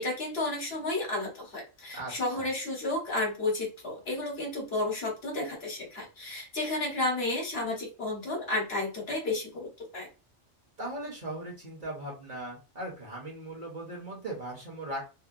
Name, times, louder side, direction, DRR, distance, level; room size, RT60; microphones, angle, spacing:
voice 1, 0.0-10.1, left 2 dB, 55° left, 0 dB, 1.1 m, -32 dB
voice 2, 1.9-2.5 10.8-15.0, right 1 dB, 45° right, -2 dB, 0.9 m, -38 dB
2.8 x 2.1 x 2.4 m, 0.30 s
omnidirectional pair, 1.3 m